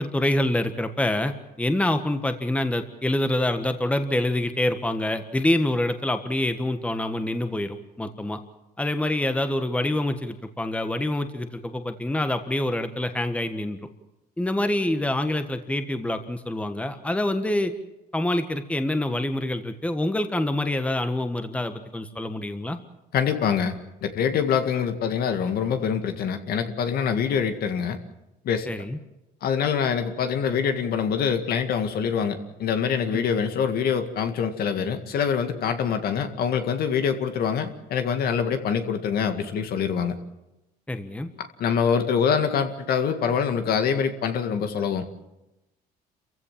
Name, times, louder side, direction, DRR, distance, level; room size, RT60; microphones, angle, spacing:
voice 1, 0.0-1.3 1.6-8.4 8.8-13.8 14.4-17.7 18.1-22.8 28.7-29.0 33.1-33.3 40.9-41.3, left 1 dB, 5° left, 8 dB, 1.5 m, -26 dB
voice 2, 23.1-23.8 24.0-28.0 28.5-28.7 29.4-40.2 41.4-45.1, left 7 dB, 65° left, 7 dB, 2.1 m, -25 dB
27.5 x 15.5 x 7.5 m, 0.97 s
cardioid pair, 110°, 17 cm